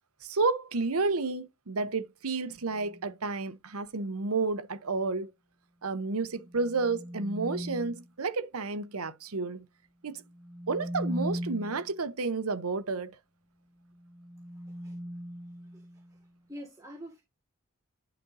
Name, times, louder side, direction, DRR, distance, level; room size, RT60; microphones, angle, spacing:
voice 1, 0.2-5.3 5.8-9.7 10.0-10.2 10.7-13.2, right 3 dB, 85° right, 0.9 m, -31 dB
sound 1, 2.6-3.1 6.2-8.1 10.2-11.9 13.9-16.2, equal, 15° left, 1.9 m, -39 dB
voice 2, 14.5-15.0 15.7-17.2, equal, 15° right, 1.8 m, -47 dB
10.5 x 5.2 x 2.7 m
head